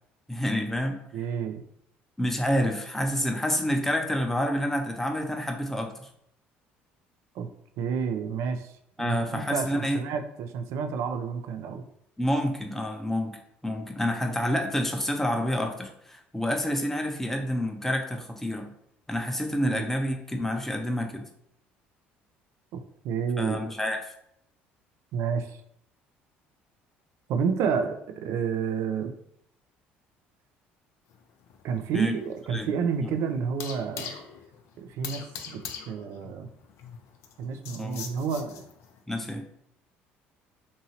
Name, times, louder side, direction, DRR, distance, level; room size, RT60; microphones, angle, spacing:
voice 1, 0.3-1.0 2.2-6.1 9.0-10.0 12.2-13.3 13.6-18.7 19.1-21.2 23.4-24.1 31.9-32.1 32.5-32.7 33.0-33.1 37.8-38.1 39.1-39.4, equal, 5° left, 4 dB, 0.6 m, -28 dB
voice 2, 1.1-1.6 7.4-7.5 7.8-8.7 9.0-11.8 19.6-19.8 23.0-23.6 25.1-25.6 27.3-29.1 31.6-34.1 34.8-36.5 37.4-38.7, right 6 dB, 65° right, 7 dB, 0.4 m, -30 dB
sound 1, 31.1-39.0, left 7 dB, 65° left, 0.4 m, -43 dB
2.7 x 2.7 x 2.8 m, 0.73 s
hypercardioid pair, 70°, 5 cm